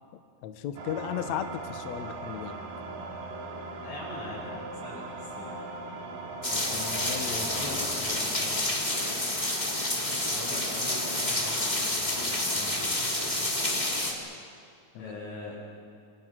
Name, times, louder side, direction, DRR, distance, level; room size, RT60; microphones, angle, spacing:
voice 1, 0.4-2.6 6.5-7.5 14.9-15.2, left 9 dB, 75° left, 8 dB, 1.6 m, -36 dB
sound 1, 0.8-7.9, right 3 dB, 55° right, 3.4 m, -39 dB
voice 2, 3.8-5.6 7.4-8.7 10.3-13.0 15.0-15.6, left 1 dB, 55° left, -3 dB, 8.8 m, -42 dB
sound 2, 6.4-14.1, left 1 dB, 10° left, 2.5 m, -29 dB
27.0 x 26.0 x 6.1 m, 2.3 s
omnidirectional pair, 4.8 m